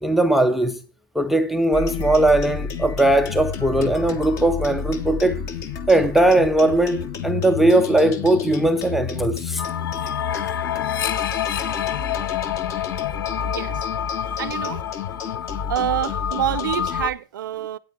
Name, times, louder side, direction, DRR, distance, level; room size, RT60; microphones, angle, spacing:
voice 1, 0.0-0.8 1.2-5.4 5.9-9.6, right 1 dB, ahead, 0.4 m, -19 dB
sound 1, 1.7-17.1, left 6 dB, 25° left, 0.9 m, -31 dB
sound 2, 9.6-17.1, left 10 dB, 80° left, 0.6 m, -28 dB
voice 2, 13.4-13.9 14.4-14.8 15.7-17.8, right 11 dB, 70° right, 0.5 m, -27 dB
8.8 x 8.7 x 4.3 m
hypercardioid pair, 140°, 11 cm